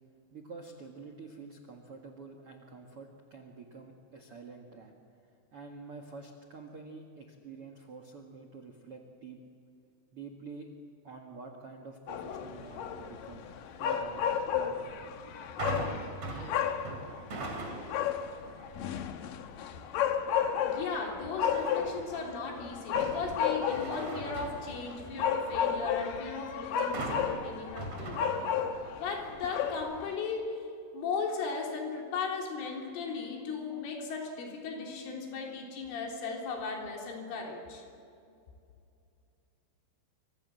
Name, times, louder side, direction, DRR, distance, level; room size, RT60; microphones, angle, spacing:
voice 1, 0.3-4.9 5.5-9.4 10.1-10.7 11.0-13.5 13.8-14.2 14.5-15.0, right 4 dB, 55° right, 2 dB, 1.6 m, -47 dB
sound 1, 12.1-30.1, left 7 dB, 70° left, 2.2 m, -33 dB
sound 2, 15.6-18.1 18.6-19.0 21.4-22.1 22.6-25.4 26.9-28.9 29.2-29.3, right 2 dB, 40° right, 3.5 m, -40 dB
voice 2, 20.6-28.3 29.0-30.6 30.9-37.8, left 4 dB, 90° left, 0 dB, 6.0 m, -37 dB
27.0 x 25.5 x 7.7 m, 2.6 s
omnidirectional pair, 5.5 m